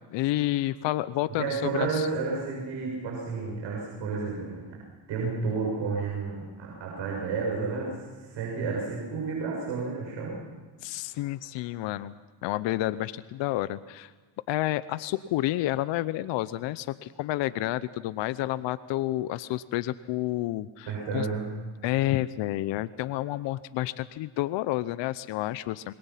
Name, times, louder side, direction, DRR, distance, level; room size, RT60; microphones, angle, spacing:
voice 1, 0.1-2.1 10.8-12.1 12.4-14.1 14.5-21.3 21.8-25.9, left 15 dB, 60° left, 16 dB, 0.9 m, -30 dB
voice 2, 1.4-4.6 5.1-10.4 20.9-21.5, right 4 dB, 60° right, -2 dB, 6.9 m, -31 dB
26.5 x 21.5 x 5.8 m, 1.3 s
supercardioid pair, 80°, 49 cm